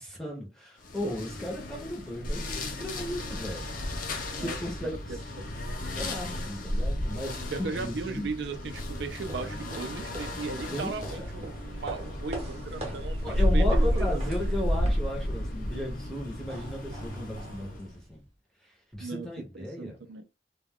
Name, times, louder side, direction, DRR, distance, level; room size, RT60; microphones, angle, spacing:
voice 1, 0.0-3.8 4.4-5.2 5.9-8.3 10.7-11.4 13.2-18.2 18.6-20.0, left 1 dB, 5° left, 0.6 m, -36 dB
sound 1, 0.8-18.0, left 1 dB, 45° left, 0.5 m, -32 dB
voice 2, 5.1-5.5 7.5-14.4 19.0-19.3 19.5-20.2, right 4 dB, 65° right, 0.4 m, -37 dB
sound 2, 8.7-18.3, right 1 dB, 35° right, 0.8 m, -43 dB
2.2 x 2.2 x 3.5 m
head